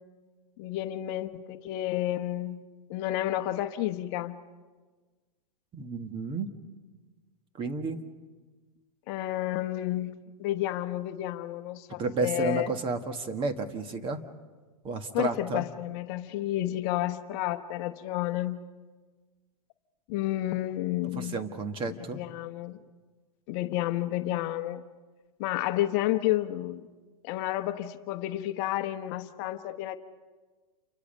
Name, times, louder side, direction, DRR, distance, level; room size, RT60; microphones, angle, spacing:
voice 1, 0.6-2.6 2.9-4.4 9.1-12.7 15.1-18.6 20.1-21.4 22.1-22.8 23.5-24.8 25.4-26.8 27.2-30.0, left 15 dB, 45° left, 8 dB, 1.0 m, -31 dB
voice 2, 5.7-6.5 7.6-8.0 12.0-14.2 14.8-15.6 21.2-22.2, right 4 dB, 25° right, 7 dB, 1.7 m, -32 dB
29.0 x 24.5 x 5.5 m, 1.4 s
hypercardioid pair, 130°, 20 cm